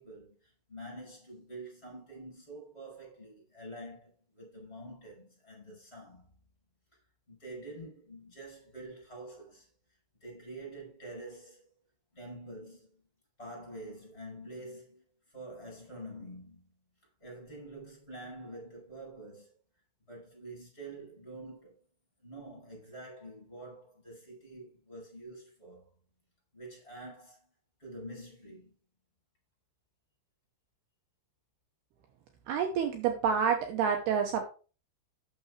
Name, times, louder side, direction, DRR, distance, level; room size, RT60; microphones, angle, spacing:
voice 1, 0.0-6.2 7.3-9.7 10.2-11.8 12.1-13.0 13.4-16.7 17.2-19.5 20.1-21.8 22.2-25.9 26.5-27.5 27.8-28.8, right 1 dB, 15° left, 5.3 m, -47 dB
voice 2, 32.5-34.4, right 7 dB, 75° right, 2.7 m, -28 dB
9.0 x 6.9 x 4.8 m
omnidirectional pair, 5.2 m